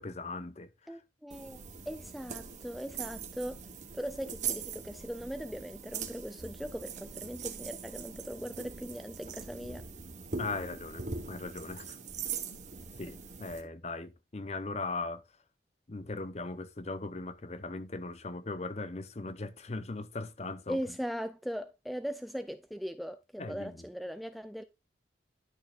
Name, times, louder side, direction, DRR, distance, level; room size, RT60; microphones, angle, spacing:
voice 1, 0.0-1.0 10.4-12.0 12.5-12.6 13.0-15.2 15.9-20.8 23.4-23.8, left 3 dB, 35° left, 0.7 m, -39 dB
voice 2, 0.9-9.9 20.7-24.6, equal, ahead, 0.3 m, -39 dB
sound 1, 1.3-13.6, right 6 dB, 40° right, 1.0 m, -41 dB
11.0 x 6.3 x 2.4 m
head